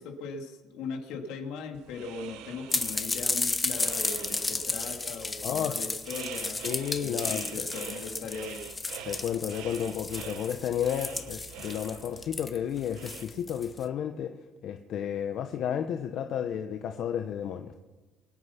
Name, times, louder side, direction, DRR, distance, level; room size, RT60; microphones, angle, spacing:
voice 1, 0.0-6.6 7.0-8.7, left 4 dB, 75° left, 3 dB, 2.7 m, -39 dB
sound 1, 1.7-13.2, right 9 dB, 80° right, 1.3 m, -46 dB
sound 2, 2.7-13.8, left 3 dB, 15° left, 1.3 m, -33 dB
voice 2, 5.4-6.0 6.6-7.7 9.0-14.4 14.6-17.8, left 9 dB, 55° left, 6 dB, 1.0 m, -32 dB
24.0 x 9.8 x 5.9 m, 1.2 s
cardioid pair, 130°, 0 cm